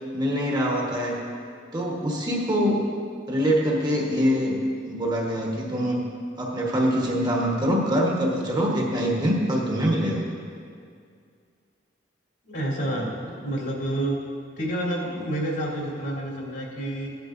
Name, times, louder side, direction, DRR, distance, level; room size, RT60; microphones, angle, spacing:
voice 1, 0.1-1.2 1.7-2.8 3.3-4.6 4.9-6.0 6.4-10.2, equal, 25° right, -2 dB, 1.2 m, -24 dB
voice 2, 12.5-13.1 13.4-14.2 14.6-17.1, right 1 dB, 65° left, -4 dB, 2.8 m, -28 dB
15.0 x 10.5 x 2.6 m, 2.2 s
head